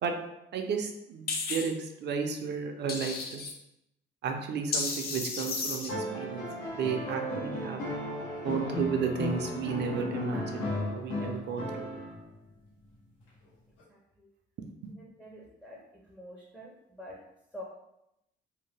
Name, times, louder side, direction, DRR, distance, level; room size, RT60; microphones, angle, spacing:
voice 1, 0.5-3.4 4.2-6.5 6.7-7.8 8.4-12.0, right 6 dB, 60° right, 4 dB, 0.5 m, -33 dB
sound 1, 1.3-1.7 2.9-3.5 4.7-5.9, left 4 dB, 50° left, 0.6 m, -33 dB
sound 2, 5.9-12.3 13.8-13.9, left 1 dB, 90° left, 0.9 m, -35 dB
voice 2, 15.0-15.8 16.1-16.7 17.0-17.2 17.5-17.6, left 1 dB, 5° left, -3 dB, 0.5 m, -45 dB
2.7 x 2.1 x 3.2 m, 0.86 s
cardioid pair, 90°, 20 cm